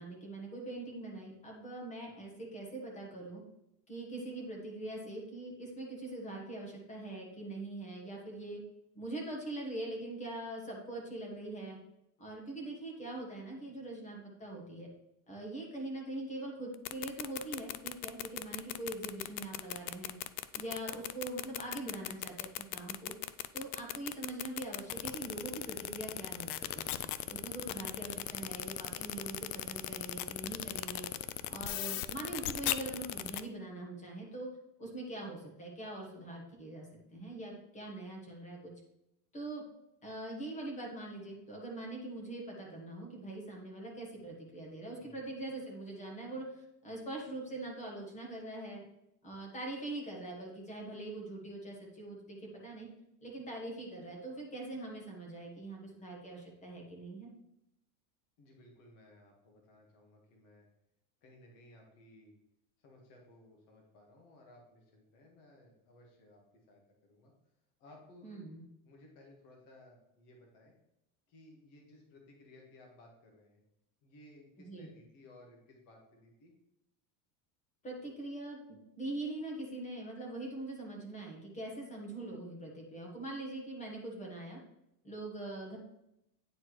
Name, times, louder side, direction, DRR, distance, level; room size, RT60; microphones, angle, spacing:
voice 1, 0.0-3.4 3.9-8.6 8.9-11.8 12.2-14.9 15.3-20.2 20.5-23.1 23.5-27.0 27.3-31.1 31.5-34.5 34.8-36.9 37.1-38.7 39.3-39.6 40.0-48.8 49.2-52.4 52.6-52.9 53.2-57.3 68.2-68.6 74.6-74.9 77.8-84.6 85.0-85.8, right 2 dB, 15° left, -1 dB, 1.2 m, -43 dB
sound 1, 16.7-33.4, left 15 dB, 85° left, 0.5 m, -37 dB
voice 2, 44.9-45.3 58.4-60.7 61.2-62.3 62.8-66.4 66.7-67.3 67.8-68.5 68.8-70.7 71.3-73.6 74.0-76.5, left 1 dB, 50° left, 0 dB, 1.7 m, -59 dB
9.3 x 4.3 x 3.1 m, 0.83 s
cardioid pair, 175°, 44 cm